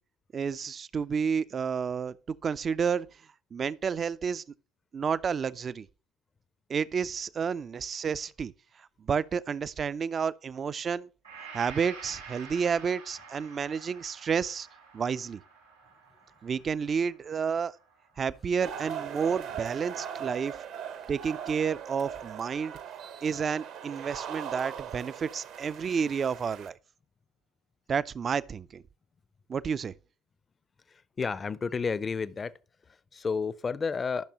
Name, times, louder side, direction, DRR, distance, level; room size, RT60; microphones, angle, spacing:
voice 1, 0.3-3.1 3.5-4.4 4.9-5.9 6.7-8.5 9.0-11.1 11.5-14.7 14.9-15.4 16.4-17.7 18.2-20.6 21.1-22.7 23.2-26.8 27.9-28.8 29.5-29.9, right 6 dB, 35° right, 0.4 m, -30 dB
Gong, 11.2-19.3, right 5 dB, 90° right, 2.6 m, -49 dB
sound 1, 18.6-26.7, right 8 dB, 55° right, 0.8 m, -40 dB
voice 2, 30.9-32.5 32.9-34.3, left 5 dB, 30° left, 0.5 m, -31 dB
13.5 x 5.9 x 2.9 m
figure-of-eight pair, 60°, 0 cm